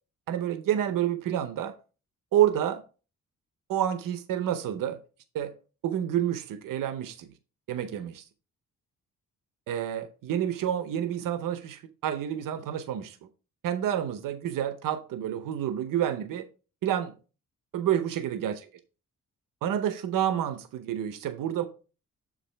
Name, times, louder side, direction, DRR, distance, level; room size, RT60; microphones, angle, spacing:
voice 1, 0.3-1.8 2.3-2.8 3.7-5.0 5.3-5.5 5.8-7.3 7.7-8.2 9.7-13.2 13.6-16.5 16.8-17.1 17.7-18.7 19.6-21.7, right 10 dB, 90° right, 0.7 m, -29 dB
7.3 x 4.9 x 3.3 m
cardioid pair, 95°, 32 cm